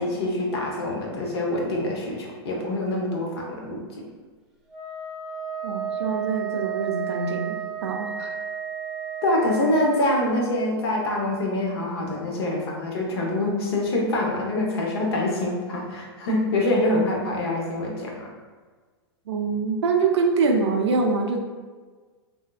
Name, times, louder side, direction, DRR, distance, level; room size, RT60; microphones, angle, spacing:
voice 1, 0.0-3.8 9.2-18.3, left 1 dB, 65° left, -1 dB, 0.9 m, -25 dB
Wind instrument woodwind instrument, 4.7-10.0, right 8 dB, ahead, 0.7 m, -32 dB
voice 2, 5.6-8.3 19.3-21.4, right 4 dB, 85° right, 2 dB, 0.5 m, -24 dB
3.5 x 2.7 x 2.3 m, 1.4 s
hypercardioid pair, 130°, 14 cm